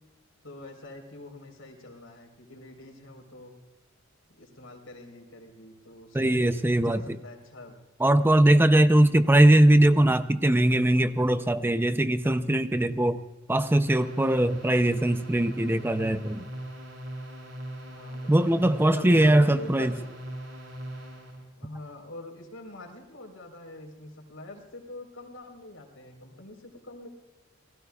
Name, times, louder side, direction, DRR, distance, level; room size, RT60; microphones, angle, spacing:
voice 1, 0.4-3.5 4.4-7.8 9.1-9.5 17.9-18.6 18.9-20.0 21.6-27.1, left 1 dB, 85° left, 3 dB, 4.0 m, -44 dB
voice 2, 6.1-7.2 8.0-13.2 13.5-16.4 18.3-19.9, right 1 dB, 10° right, 10 dB, 0.5 m, -21 dB
sound 1, 13.9-21.4, right 1 dB, 90° right, 5.3 m, -40 dB
28.0 x 19.0 x 2.4 m, 1.1 s
head